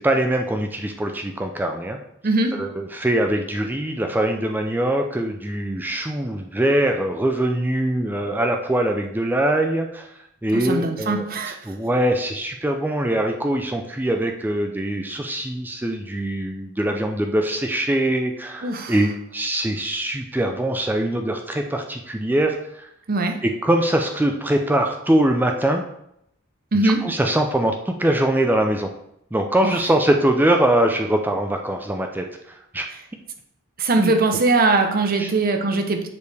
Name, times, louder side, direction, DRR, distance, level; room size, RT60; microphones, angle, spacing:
voice 1, 0.0-2.0 2.5-10.1 10.4-11.2 11.7-22.9 23.4-25.8 27.0-28.9 29.3-32.9 34.0-34.1 35.2-35.3, right 1 dB, 10° right, 4 dB, 0.4 m, -22 dB
voice 2, 2.2-2.7 10.5-11.6 18.6-19.0 23.1-23.4 26.7-27.1 29.6-29.8 33.8-36.1, right 3 dB, 50° right, 6 dB, 0.7 m, -21 dB
6.9 x 5.0 x 3.4 m, 0.77 s
head